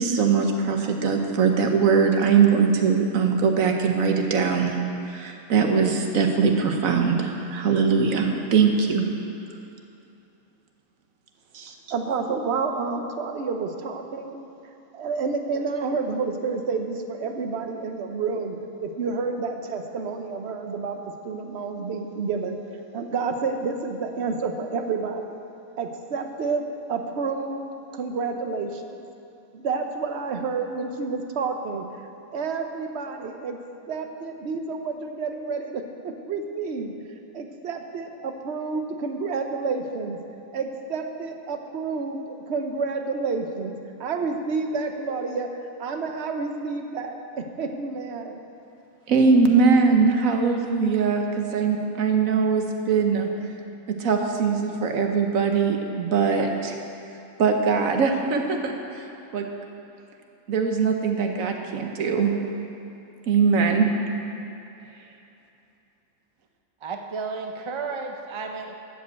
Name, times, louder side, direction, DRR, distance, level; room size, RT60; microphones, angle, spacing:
voice 1, 0.0-4.8 5.0-9.0 11.5-11.7 49.1-53.3 53.9-56.8 57.4-59.5 60.5-62.3 63.3-63.9, right 5 dB, 75° right, 3 dB, 1.3 m, -21 dB
voice 2, 11.9-14.4 14.9-22.6 22.9-25.4 25.8-26.6 26.9-27.7 27.9-28.9 29.5-33.6 33.9-36.9 37.3-40.2 40.5-45.5 45.8-48.4, right 4 dB, 55° right, 5 dB, 1.0 m, -29 dB
voice 3, 66.8-68.7, right 4 dB, 35° right, 3 dB, 0.5 m, -32 dB
12.0 x 5.3 x 8.0 m, 2.8 s
omnidirectional pair, 1.5 m